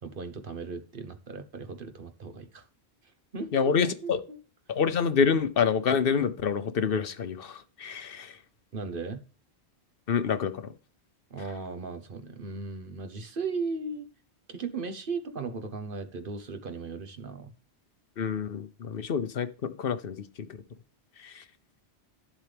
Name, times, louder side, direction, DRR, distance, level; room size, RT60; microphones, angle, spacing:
voice 1, 0.0-2.6 3.3-4.4 8.7-9.2 11.3-14.1 14.5-17.5, right 4 dB, 55° right, 8 dB, 1.2 m, -36 dB
voice 2, 3.5-4.2 4.7-8.4 10.1-10.7 18.2-20.5 21.2-21.4, left 6 dB, 60° left, 12 dB, 0.9 m, -27 dB
11.5 x 7.6 x 3.4 m, 0.38 s
omnidirectional pair, 1.1 m